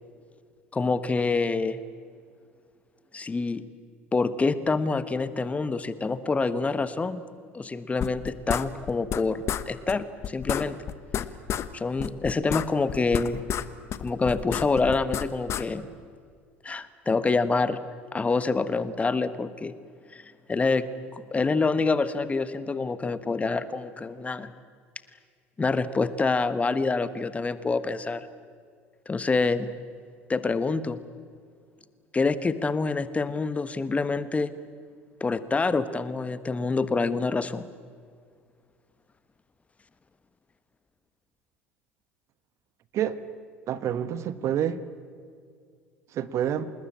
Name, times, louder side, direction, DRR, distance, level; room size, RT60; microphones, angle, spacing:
voice 1, 0.7-1.8 3.1-3.6 4.1-7.2 7.5-10.8 11.7-13.4 14.0-15.9 16.6-17.8 18.1-19.7 20.1-20.2 20.5-20.8 21.1-24.5 25.6-28.3 29.1-29.7 30.3-31.0 32.1-34.5 35.2-37.6, left 4 dB, 20° left, 14 dB, 1.3 m, -26 dB
sound 1, 8.0-9.2 9.5-9.6 9.9-10.0 10.2-11.7 12.0-13.7 13.9-15.6, left 9 dB, 40° left, 1.2 m, -30 dB
voice 2, 43.7-44.8 46.1-46.7, right 10 dB, 45° right, 14 dB, 1.3 m, -28 dB
26.5 x 20.5 x 8.7 m, 2.1 s
figure-of-eight pair, 70°, 7 cm